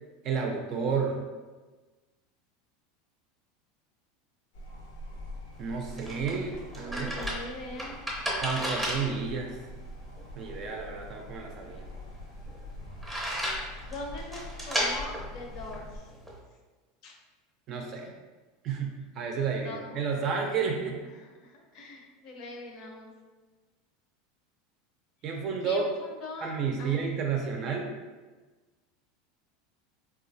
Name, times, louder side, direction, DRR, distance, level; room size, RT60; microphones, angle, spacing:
voice 1, 0.2-1.2 5.6-7.1 8.4-9.5 10.3-11.9 17.7-18.1 18.6-21.0 25.2-25.8 26.4-27.9, right 5 dB, 40° right, 1 dB, 0.5 m, -31 dB
sound 1, 4.5-16.0, left 1 dB, 85° left, 0.7 m, -44 dB
sound 2, 5.5-16.4, equal, 5° right, 0.7 m, -35 dB
voice 2, 6.8-8.0 13.9-16.1 17.0-17.1 19.6-20.0 21.0-23.1 25.6-27.2, left 2 dB, 50° left, 1 dB, 0.6 m, -42 dB
3.8 x 2.4 x 2.6 m, 1.3 s
supercardioid pair, 150°, 0 cm